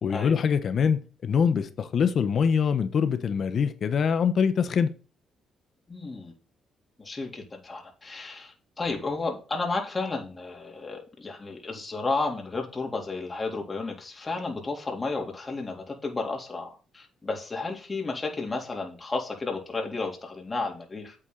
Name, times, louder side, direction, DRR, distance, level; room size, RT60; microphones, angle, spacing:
voice 1, 0.0-4.9, left 6 dB, 55° left, 1.2 m, -24 dB
voice 2, 5.9-6.3 7.0-21.2, left 3 dB, 25° left, 3.7 m, -32 dB
8.7 x 8.3 x 4.1 m
cardioid pair, 90°, 0 cm